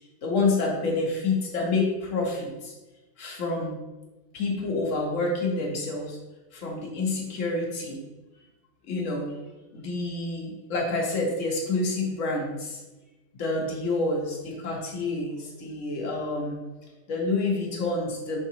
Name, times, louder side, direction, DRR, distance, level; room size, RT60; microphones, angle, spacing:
voice 1, 0.2-2.7 3.2-3.8 4.3-6.2 6.5-8.0 8.8-9.3 9.7-12.8 13.3-18.4, left 3 dB, 55° left, -1 dB, 0.9 m, -28 dB
4.9 x 3.5 x 2.7 m, 1.1 s
omnidirectional pair, 2.1 m